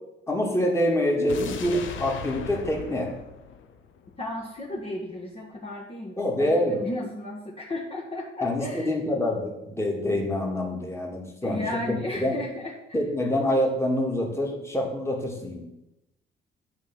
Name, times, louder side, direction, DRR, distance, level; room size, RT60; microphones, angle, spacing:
voice 1, 0.3-3.1 6.2-6.8 8.4-11.6 12.1-12.3 12.9-15.7, left 1 dB, 15° left, 0 dB, 2.3 m, -26 dB
sound 1, 1.3-4.4 4.7-4.8, left 7 dB, 75° left, 0.9 m, -39 dB
voice 2, 4.2-8.9 11.4-13.0, left 1 dB, 30° left, -4 dB, 1.6 m, -34 dB
8.8 x 4.4 x 7.4 m, 0.93 s
cardioid pair, 90°, 20 cm